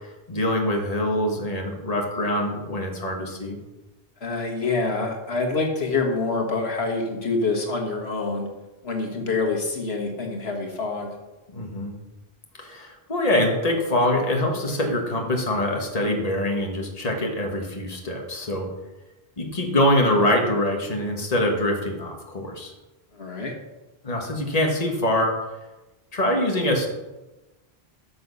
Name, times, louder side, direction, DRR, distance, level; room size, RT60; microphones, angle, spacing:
voice 1, 0.3-3.6 11.5-12.0 12.6-18.7 19.4-22.7 24.0-25.4 26.1-26.9, left 1 dB, 40° left, 1 dB, 1.7 m, -24 dB
voice 2, 4.2-8.5 8.8-11.1 23.1-23.5, left 3 dB, 85° left, 2 dB, 1.8 m, -26 dB
13.0 x 6.5 x 5.5 m, 1.1 s
omnidirectional pair, 1.0 m